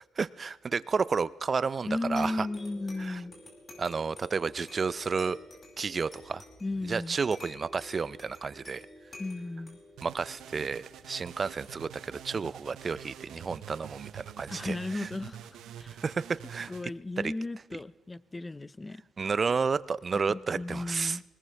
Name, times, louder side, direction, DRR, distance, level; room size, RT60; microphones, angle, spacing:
voice 1, 0.2-2.5 3.0-3.2 3.8-5.4 5.8-6.4 6.8-8.9 10.0-15.1 15.9-16.7 17.2-17.3 19.2-21.2, right 5 dB, 35° right, 19 dB, 0.4 m, -31 dB
voice 2, 1.9-3.4 6.6-7.2 9.2-9.8 14.5-15.5 15.8-16.0 16.7-19.0 20.1-21.2, left 2 dB, 20° left, 19 dB, 0.5 m, -35 dB
sound 1, 2.2-13.2, left 2 dB, 35° left, 5.0 m, -51 dB
sound 2, 10.0-16.8, right 10 dB, 80° right, 0.8 m, -46 dB
21.0 x 18.5 x 3.4 m, 1.1 s
cardioid pair, 90°, 0 cm